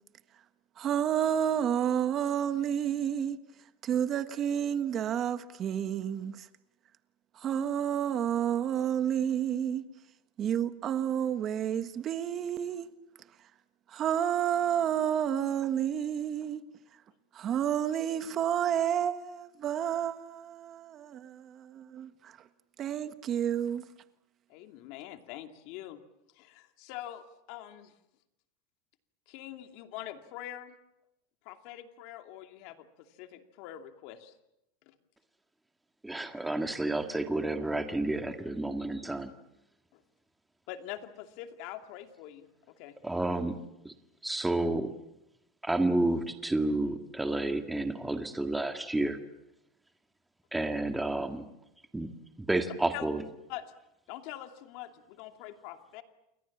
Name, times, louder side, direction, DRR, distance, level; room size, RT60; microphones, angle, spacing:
voice 1, 0.8-3.4 3.8-6.5 7.4-9.8 10.4-12.9 13.9-16.6 17.3-22.3 22.8-23.8, right 9 dB, 35° right, 1.5 m, -30 dB
voice 2, 24.5-26.0 26.3-27.9 29.3-30.8 31.4-34.3 34.9-35.0 39.9-40.0 40.7-43.0 52.9-53.1 53.5-53.7 54.1-56.0, left 13 dB, 60° left, 2.5 m, -44 dB
voice 3, 36.0-39.3 43.0-43.6 43.9-44.0 44.2-44.9 45.6-49.2 50.5-51.4 51.9-52.1 52.5-53.2, right 2 dB, 5° right, 1.9 m, -30 dB
29.5 x 22.0 x 7.3 m
supercardioid pair, 140°, 0 cm